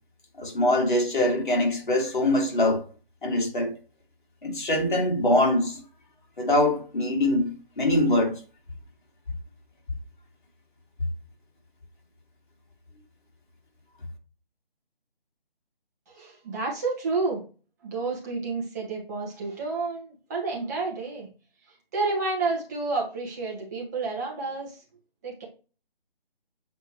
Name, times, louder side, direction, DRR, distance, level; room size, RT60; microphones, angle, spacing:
voice 1, 0.4-2.8 3.2-3.7 4.4-5.8 6.4-8.4, left 1 dB, 55° left, 2.5 m, -23 dB
voice 2, 16.1-17.4 17.8-21.3 21.9-24.8 25.2-25.4, right 3 dB, 15° right, 1.6 m, -30 dB
7.9 x 4.3 x 3.1 m
figure-of-eight pair, 160°, 30 cm